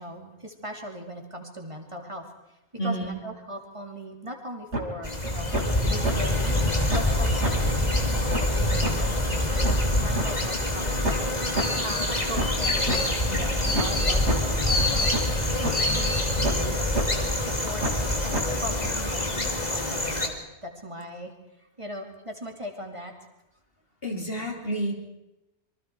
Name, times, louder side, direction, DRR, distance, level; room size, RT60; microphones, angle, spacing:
voice 1, 0.0-2.3 2.8-5.5 5.8-6.6 6.9-11.4 11.8-15.1 15.5-16.9 17.3-20.3 20.6-21.3 21.6-23.1, equal, 25° right, 3 dB, 2.9 m, -39 dB
voice 2, 2.8-3.1 24.0-24.9, right 1 dB, 60° left, 1 dB, 3.9 m, -29 dB
sound 1, 4.7-4.8 5.2-5.6 6.0-6.1 6.6-6.7 6.9-7.1 7.4-7.5 7.9-8.0 8.3-8.4 8.8-8.9 9.3-10.3 10.7-10.8 11.0-11.2 11.6-11.7 12.1-13.0 13.4-13.5 13.7-13.9 14.3-14.4 14.8-14.9 15.1-15.3 15.6-15.7 16.1-16.7 16.9-17.1 17.5-17.6 17.8-18.0 18.3-18.4 18.8-18.9, right 1 dB, 85° right, 4.0 m, -28 dB
sound 2, 5.0-20.3, left 1 dB, 40° left, 2.7 m, -25 dB
27.5 x 23.5 x 4.6 m, 0.94 s
omnidirectional pair, 1.1 m